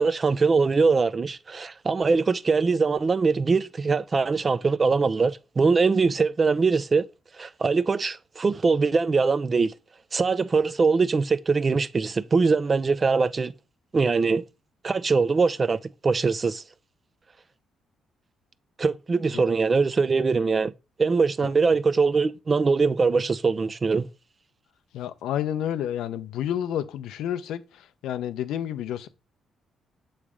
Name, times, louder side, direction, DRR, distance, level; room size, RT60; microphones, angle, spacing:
voice 1, 0.0-7.0 7.4-9.7 10.1-13.5 13.9-14.4 14.8-16.6 18.8-20.7 21.0-24.1, right 4 dB, 35° right, 0.4 m, -22 dB
voice 2, 24.9-27.6 28.0-29.1, left 10 dB, 85° left, 0.5 m, -29 dB
7.1 x 3.2 x 4.9 m
cardioid pair, 90°, 0 cm